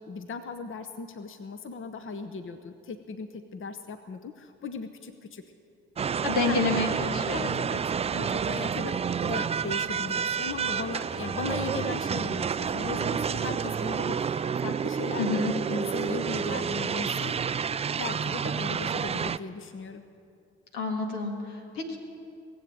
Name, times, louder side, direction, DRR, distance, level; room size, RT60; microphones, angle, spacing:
voice 1, 0.0-5.4 6.5-6.8 7.3-17.4 18.0-20.0, left 4 dB, 40° left, 8 dB, 0.9 m, -38 dB
sound 1, 6.0-19.4, right 7 dB, 20° right, 0.3 m, -29 dB
voice 2, 6.2-7.6 15.2-15.5 20.7-22.0, left 3 dB, 80° left, 2 dB, 1.9 m, -29 dB
19.5 x 7.9 x 8.8 m, 2.5 s
hypercardioid pair, 50°, 32 cm